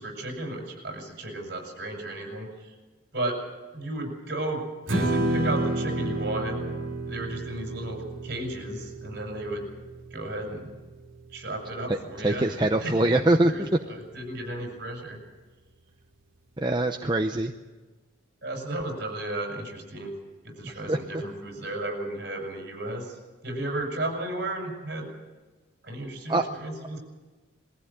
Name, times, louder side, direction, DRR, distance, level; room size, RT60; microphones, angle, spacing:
voice 1, 0.0-2.7 3.1-3.4 3.7-4.6 4.9-6.6 7.1-9.6 10.1-10.8 11.3-13.2 13.4-15.2 18.4-20.1 20.4-23.2 23.4-25.1 25.8-27.0, right 1 dB, 50° right, 0 dB, 7.3 m, -34 dB
Strum, 4.9-11.2, right 1 dB, 75° right, 3.1 m, -30 dB
voice 2, 12.2-13.7 16.6-17.5 20.6-21.2 26.3-26.4, right 2 dB, 20° right, 4 dB, 0.7 m, -24 dB
22.0 x 15.0 x 8.9 m, 1.3 s
head